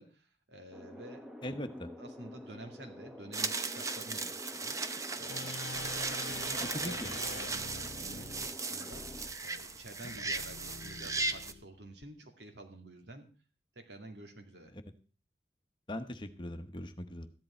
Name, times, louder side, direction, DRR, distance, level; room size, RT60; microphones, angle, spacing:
voice 1, 0.0-1.3 2.0-13.3 13.8-14.8, right 2 dB, 80° right, 4 dB, 2.3 m, -50 dB
sound 1, 0.7-9.3, left 1 dB, 5° right, 1.0 m, -49 dB
voice 2, 1.4-1.9 6.8-7.1 15.9-17.3, left 1 dB, 25° left, 8 dB, 1.0 m, -40 dB
sound 2, 3.3-11.5, right 3 dB, 20° right, 0.6 m, -37 dB
sound 3, 5.3-12.1, left 4 dB, 85° left, 0.5 m, -47 dB
14.0 x 11.0 x 4.3 m, 0.37 s
head